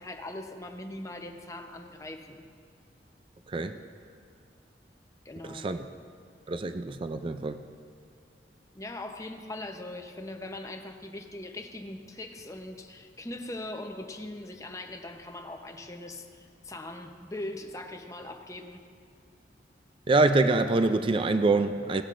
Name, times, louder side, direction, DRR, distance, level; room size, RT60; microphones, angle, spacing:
voice 1, 0.0-2.5 5.2-5.7 8.7-18.9, left 1 dB, 20° left, 4 dB, 0.7 m, -40 dB
voice 2, 5.5-5.8 6.5-7.6 20.1-22.0, right 3 dB, 30° right, 9 dB, 0.4 m, -25 dB
18.0 x 12.5 x 2.5 m, 2.2 s
head